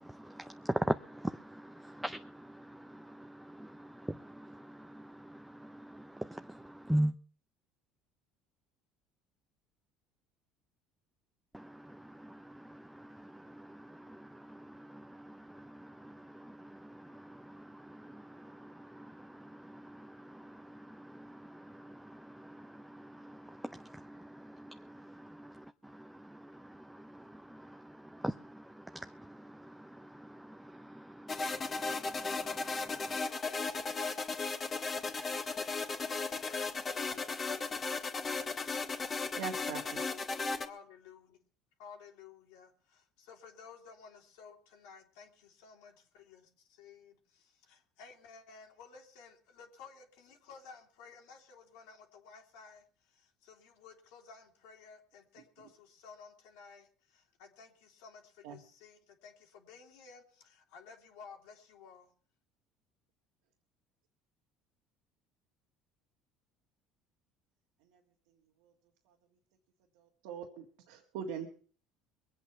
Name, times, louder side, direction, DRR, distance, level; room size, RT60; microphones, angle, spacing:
voice 1, 0.0-7.1 11.5-33.2, right 1 dB, 5° right, 0.6 m, -42 dB
sound 1, 31.3-40.7, left 4 dB, 30° left, 1.9 m, -36 dB
voice 2, 33.1-33.8 36.0-36.8 40.6-41.4 41.8-62.1, left 5 dB, 85° left, 2.8 m, -55 dB
voice 3, 39.4-40.0 58.4-58.6 70.2-71.5, right 7 dB, 85° right, 1.8 m, -41 dB
22.0 x 8.3 x 5.9 m
supercardioid pair, 105°, 0 cm